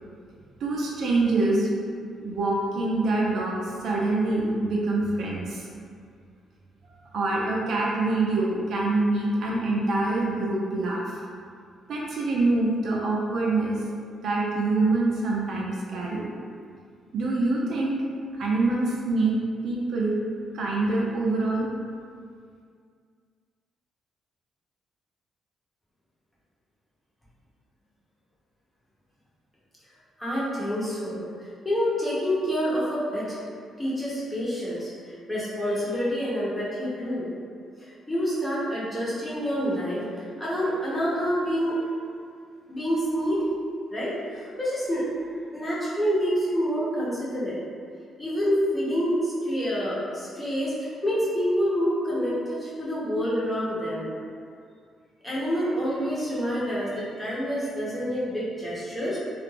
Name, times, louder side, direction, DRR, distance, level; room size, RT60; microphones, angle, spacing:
voice 1, 0.6-1.7 2.2-3.6 3.8-5.7 7.1-11.2 11.9-13.8 14.2-16.3 17.1-18.0 18.4-19.4 19.6-20.2 20.5-21.7, right 2 dB, 65° right, -4 dB, 0.4 m, -25 dB
voice 2, 30.2-33.4 33.8-37.3 37.8-41.8 42.7-43.4 43.9-45.1 45.5-47.6 48.2-54.1 55.2-59.2, equal, 15° left, -8 dB, 0.8 m, -27 dB
2.3 x 2.0 x 3.2 m, 2.2 s
cardioid pair, 90°, 0 cm